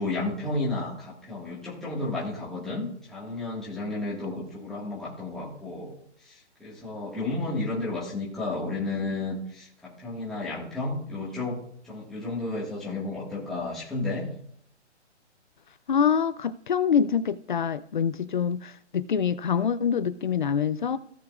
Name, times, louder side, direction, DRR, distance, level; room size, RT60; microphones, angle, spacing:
voice 1, 0.0-5.9 6.2-11.6 11.8-14.3, left 2 dB, ahead, 1.7 m, -32 dB
voice 2, 15.9-21.0, left 7 dB, 45° left, 0.5 m, -25 dB
17.0 x 6.8 x 2.4 m
hypercardioid pair, 160°, 35 cm